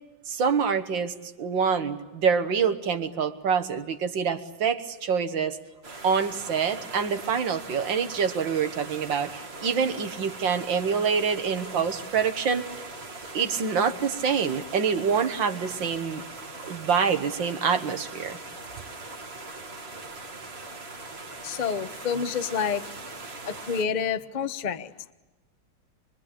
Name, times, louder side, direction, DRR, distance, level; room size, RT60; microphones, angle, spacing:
voice 1, 0.3-5.6 6.0-12.7 13.3-16.2 16.6-18.4, right 6 dB, 65° right, 8 dB, 2.0 m, -26 dB
sound 1, 5.8-23.8, right 3 dB, 30° right, 1.5 m, -41 dB
voice 2, 21.4-22.9 23.4-25.1, left 7 dB, 80° left, 11 dB, 0.4 m, -29 dB
25.0 x 23.5 x 8.5 m, 1.1 s
omnidirectional pair, 2.3 m